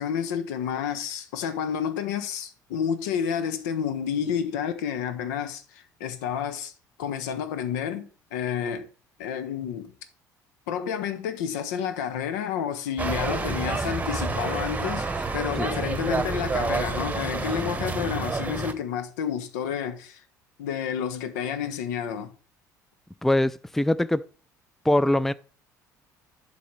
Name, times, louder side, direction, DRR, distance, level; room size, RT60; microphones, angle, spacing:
voice 1, 0.0-6.7 7.0-8.9 9.2-9.9 10.7-20.2 20.6-22.3, left 8 dB, 75° left, 1.1 m, -30 dB
sound 1, 13.0-18.7, right 3 dB, 15° right, 1.3 m, -29 dB
voice 2, 23.2-24.2 24.8-25.3, left 1 dB, 5° left, 0.4 m, -22 dB
11.0 x 4.0 x 4.7 m
hypercardioid pair, 60°, 10 cm